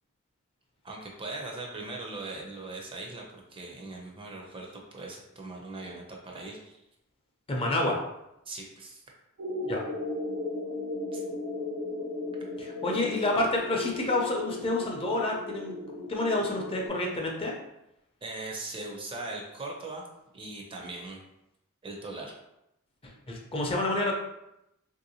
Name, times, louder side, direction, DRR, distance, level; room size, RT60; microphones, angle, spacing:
voice 1, 0.8-3.2 3.5-6.8 8.5-9.0 11.1-11.2 18.2-20.0 20.3-21.2 21.8-22.3, right 2 dB, 25° right, -1 dB, 0.5 m, -40 dB
voice 2, 7.5-8.0 9.6-9.8 12.6-15.7 16.1-17.5 23.0-24.1, left 2 dB, 25° left, -1 dB, 0.5 m, -28 dB
sound 1, 9.4-16.9, left 2 dB, 80° right, 0.7 m, -36 dB
3.3 x 2.6 x 2.8 m, 0.85 s
head